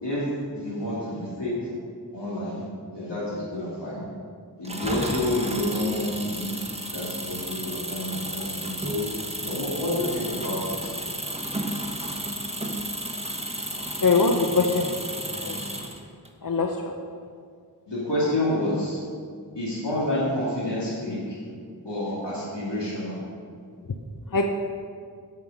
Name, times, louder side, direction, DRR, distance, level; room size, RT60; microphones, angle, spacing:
voice 1, 0.0-1.7 2.1-2.6 2.9-4.0 4.6-6.6 6.9-9.1 9.4-10.9 17.9-19.0 19.6-21.4 21.8-23.2, left 1 dB, 85° left, -8 dB, 2.4 m, -29 dB
Engine, 4.6-16.3, right 1 dB, 15° right, 1.1 m, -33 dB
voice 2, 14.0-14.9 15.5-15.6 16.4-16.7 24.3-24.6, left 4 dB, 50° left, 4 dB, 0.6 m, -21 dB
9.3 x 6.4 x 5.3 m, 2.2 s
wide cardioid pair, 40°, 41 cm